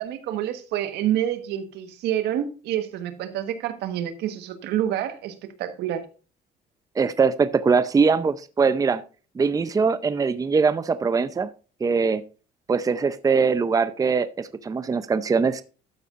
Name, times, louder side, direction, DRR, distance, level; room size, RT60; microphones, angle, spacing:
voice 1, 0.0-6.0, right 11 dB, 85° right, 1.4 m, -28 dB
voice 2, 7.0-9.0 9.4-11.5 11.8-12.2 12.7-15.6, right 5 dB, 20° right, 0.6 m, -22 dB
12.5 x 8.4 x 2.5 m
cardioid pair, 110°, 17 cm